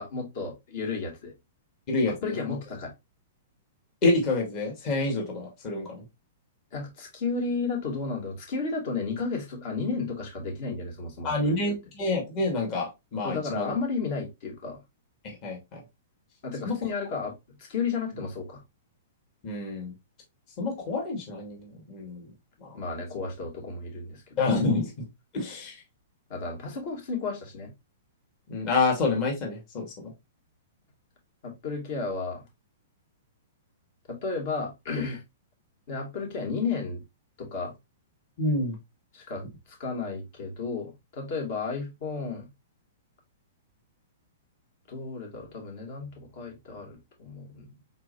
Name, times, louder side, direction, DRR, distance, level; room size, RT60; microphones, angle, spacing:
voice 1, 0.0-1.3 2.2-2.9 6.7-11.7 13.2-14.8 16.4-18.6 22.7-24.2 24.5-24.6 26.3-27.7 31.4-32.4 34.1-35.2 35.9-37.0 37.4-37.7 39.1-39.4 39.8-42.5 44.9-47.8, left 4 dB, 55° left, 2.6 m, -33 dB
voice 2, 1.9-2.3 4.0-6.1 11.2-13.7 15.2-15.8 16.6-16.8 19.4-19.9 20.6-22.2 22.6-22.7 24.4-24.9 25.3-25.8 28.5-30.1 38.4-38.7, left 2 dB, 35° left, 2.2 m, -28 dB
4.4 x 4.2 x 2.7 m
hypercardioid pair, 135°, 0 cm